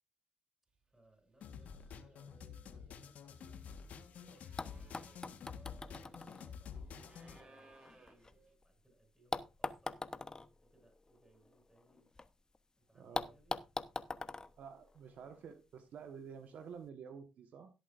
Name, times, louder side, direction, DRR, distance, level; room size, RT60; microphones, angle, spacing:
voice 1, 0.9-5.2 5.5-10.0 10.6-12.1 12.8-13.6, right 2 dB, 10° right, 4 dB, 7.3 m, -69 dB
sound 1, 1.0-1.2 1.4-8.6, right 3 dB, 40° right, 3.3 m, -65 dB
sound 2, 1.4-7.4, left 6 dB, 70° left, 1.4 m, -50 dB
sound 3, 4.1-4.2 4.6-8.7 9.3-12.3 12.5-12.6 13.1-15.5 16.5-16.6, left 3 dB, 25° left, 1.0 m, -44 dB
voice 2, 12.9-13.3 14.6-17.7, right 6 dB, 70° right, 7 dB, 1.4 m, -50 dB
17.0 x 8.4 x 2.6 m, 0.26 s
supercardioid pair, 60°, 3 cm